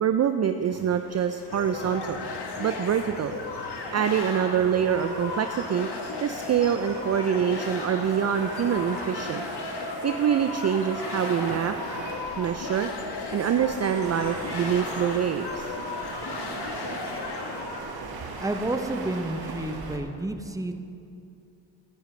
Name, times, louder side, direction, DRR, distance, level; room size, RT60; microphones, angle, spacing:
voice 1, 0.0-2.2 2.6-3.3 3.9-5.9 6.2-9.4 10.0-11.7 12.4-12.9 13.3-15.7, right 8 dB, 35° right, 8 dB, 0.5 m, -25 dB
sound 1, 0.6-20.0, right 3 dB, 50° right, 1.6 m, -39 dB
sound 2, 1.5-17.8, left 4 dB, 55° left, 1.4 m, -35 dB
voice 2, 18.4-20.7, right 2 dB, 5° right, 7 dB, 0.9 m, -30 dB
15.5 x 10.5 x 3.3 m, 2.6 s
supercardioid pair, 60°, 47 cm